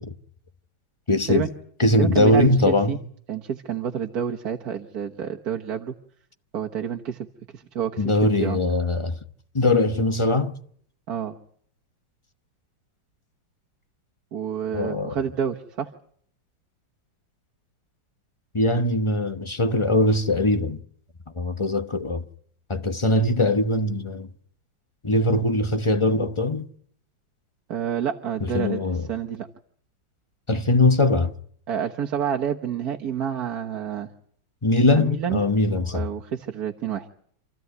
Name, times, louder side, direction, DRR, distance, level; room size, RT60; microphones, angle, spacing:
voice 1, 1.1-1.5 1.8-3.0 8.0-9.2 9.5-10.5 14.7-15.2 18.5-20.8 21.4-22.2 22.7-24.3 25.0-26.7 28.4-29.1 30.5-31.3 34.6-36.1, left 2 dB, 25° left, 0.7 m, -21 dB
voice 2, 2.0-3.0 3.3-5.9 6.5-7.3 7.5-8.6 11.1-11.4 14.3-15.9 27.7-28.8 29.1-29.5 31.7-34.1 34.9-35.4 35.9-37.1, right 8 dB, 55° right, 1.6 m, -28 dB
27.5 x 15.5 x 9.4 m
omnidirectional pair, 2.1 m